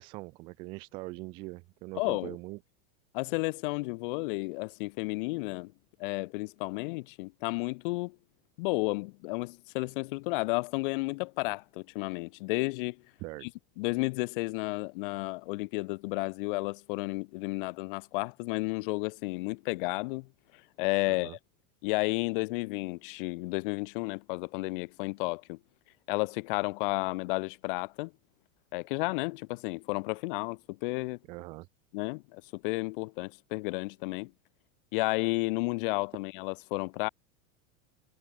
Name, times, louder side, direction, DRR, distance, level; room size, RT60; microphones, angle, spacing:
voice 1, 0.0-2.6 13.2-13.5 21.1-21.4 31.3-31.7, right 23 dB, 15° right, 0.4 m, -42 dB
voice 2, 1.9-2.3 3.1-5.7 6.0-8.1 8.6-13.0 13.4-13.5 13.8-20.3 20.8-21.4 21.8-25.6 26.1-28.1 28.7-31.2 31.9-34.3 34.9-37.1, left 26 dB, 40° left, 1.6 m, -32 dB
supercardioid pair, 180°, 41 cm